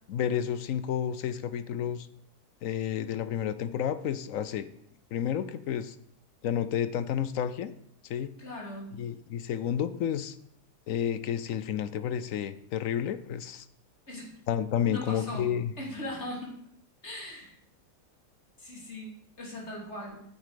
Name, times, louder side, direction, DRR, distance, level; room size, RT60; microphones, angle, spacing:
voice 1, 0.1-2.1 2.6-4.7 5.1-6.0 6.4-7.7 8.0-8.3 9.0-10.4 10.9-13.7 14.5-15.7, left 9 dB, 65° left, 13 dB, 0.9 m, -31 dB
voice 2, 8.4-9.0 14.1-14.3 14.9-15.5 15.8-16.6 17.0-17.5 18.6-19.1 19.4-20.2, left 1 dB, 40° left, -2 dB, 3.4 m, -39 dB
9.8 x 8.3 x 5.1 m, 0.67 s
omnidirectional pair, 1.8 m